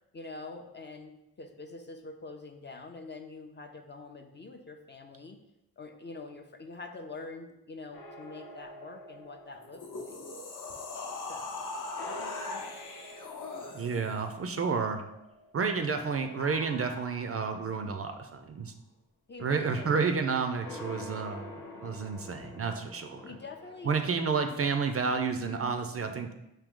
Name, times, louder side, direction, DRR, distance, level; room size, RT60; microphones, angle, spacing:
voice 1, 0.1-5.4 5.8-10.2 11.3-11.7 12.1-12.7 19.3-19.9 23.2-23.9, left 3 dB, 30° left, 5 dB, 0.4 m, -45 dB
sound 1, 7.9-11.6 11.9-15.8 16.4-18.2 20.6-24.1, left 1 dB, 85° left, 0.8 m, -47 dB
sound 2, 9.6-14.2, left 3 dB, 55° left, 0.8 m, -40 dB
voice 2, 13.7-15.0 15.5-18.7 19.4-21.4 21.8-23.2 23.8-26.3, right 5 dB, 40° right, 6 dB, 0.4 m, -30 dB
5.0 x 2.7 x 3.6 m, 0.89 s
cardioid pair, 80°, 36 cm